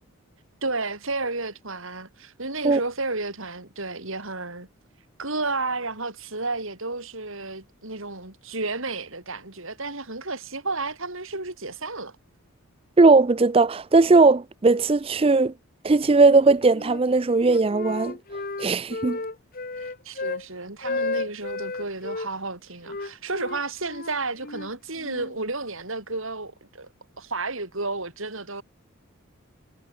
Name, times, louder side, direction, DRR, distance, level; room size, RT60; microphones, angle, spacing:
voice 1, 0.6-4.7 5.2-12.1 19.1-19.2 19.8-26.9 27.2-28.6, right 3 dB, 65° right, 5.4 m, -32 dB
voice 2, 13.0-15.5 15.8-18.2 18.6-19.2, right 3 dB, 25° right, 0.4 m, -18 dB
Wind instrument woodwind instrument, 16.2-17.0 17.4-20.5 20.8-22.3 22.9-25.4, left 3 dB, 40° left, 1.2 m, -33 dB
head